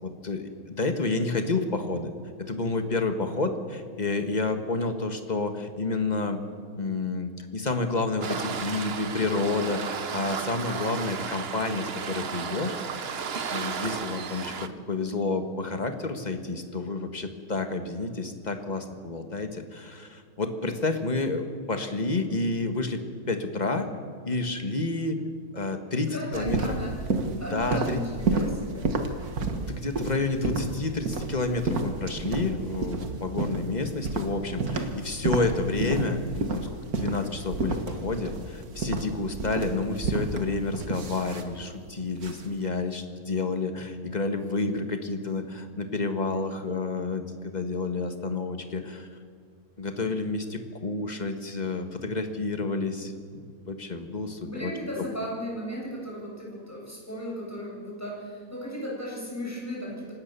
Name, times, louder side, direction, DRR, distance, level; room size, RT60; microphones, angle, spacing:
voice 1, 0.0-2.1 2.4-6.4 6.8-13.1 13.5-23.9 24.2-25.2 25.5-26.8 27.3-28.0 29.5-49.1 49.8-53.1 53.6-55.2, left 3 dB, 30° left, 7 dB, 1.7 m, -30 dB
Waves surf, 8.2-14.7, right 6 dB, 45° right, 1.1 m, -34 dB
voice 2, 25.9-26.9 27.4-28.8 54.4-60.1, equal, 10° left, -4 dB, 7.6 m, -36 dB
sound 1, 26.3-42.6, right 3 dB, 85° right, 2.1 m, -31 dB
26.5 x 18.5 x 7.0 m, 2.1 s
omnidirectional pair, 1.5 m